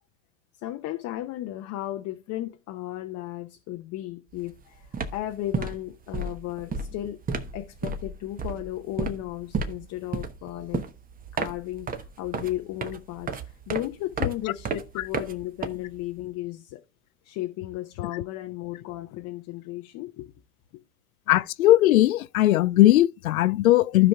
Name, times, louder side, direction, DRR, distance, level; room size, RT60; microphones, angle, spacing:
voice 1, 0.6-7.2 7.5-10.8 11.3-16.8 17.2-20.3, left 14 dB, 40° left, 0.8 m, -35 dB
sound 1, 4.3-4.5 4.8-16.2, right 4 dB, 20° right, 0.9 m, -33 dB
voice 2, 21.3-24.1, left 15 dB, 85° left, 0.5 m, -19 dB
15.0 x 5.1 x 2.3 m
hypercardioid pair, 95°, 41 cm